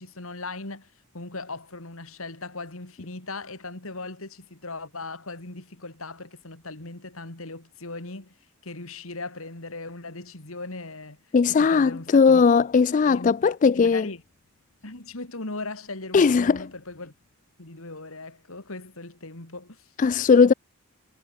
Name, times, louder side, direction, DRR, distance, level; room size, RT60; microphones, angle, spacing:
voice 1, 0.0-8.3 8.6-11.2 11.5-12.5 13.0-14.2 14.8-17.1 17.6-19.9, left 2 dB, 70° left, 3.2 m, -38 dB
voice 2, 11.3-14.1 16.1-16.6 20.0-20.5, left 5 dB, 35° left, 0.3 m, -18 dB
head